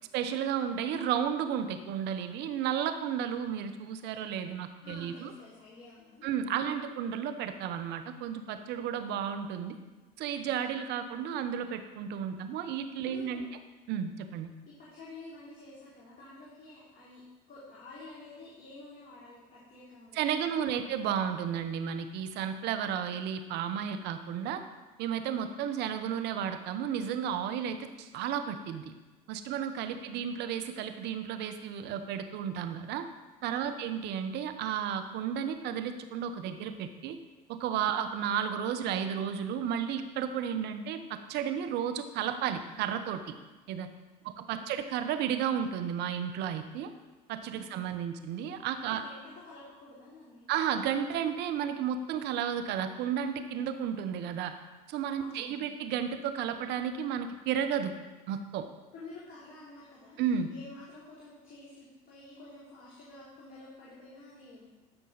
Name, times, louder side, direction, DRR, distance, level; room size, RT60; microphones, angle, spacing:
voice 1, 0.1-5.3 6.2-9.8 10.2-13.5 13.9-14.5 20.1-24.6 25.0-28.9 29.3-33.1 33.4-37.2 37.5-43.3 43.7-43.9 44.2-46.9 47.3-49.0 50.5-54.5 54.9-57.9 58.3-58.7 60.2-60.5, right 8 dB, 65° right, 8 dB, 0.9 m, -33 dB
voice 2, 4.8-6.3 13.1-13.5 14.6-17.2 17.5-20.2 20.6-20.9 33.6-33.9 44.5-44.7 47.5-47.8 48.9-50.5 55.2-55.6 58.9-64.7, left 2 dB, 45° left, -8 dB, 3.2 m, -50 dB
13.5 x 5.5 x 4.0 m, 1.2 s
hypercardioid pair, 75°, 19 cm